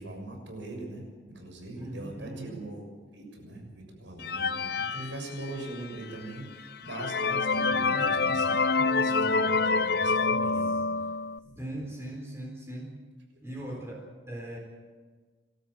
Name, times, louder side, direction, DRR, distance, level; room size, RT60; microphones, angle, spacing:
voice 1, 0.0-2.8 3.1-10.8 11.4-11.6, right 1 dB, 80° right, 2 dB, 6.6 m, -41 dB
voice 2, 1.8-2.6 10.5-10.8 11.6-13.0 13.4-14.6, right 1 dB, 15° right, -2 dB, 4.1 m, -40 dB
sound 1, 4.2-5.8 6.4-6.5 6.9-11.4, left 4 dB, 55° left, 0.7 m, -27 dB
27.5 x 13.0 x 7.7 m, 1.4 s
head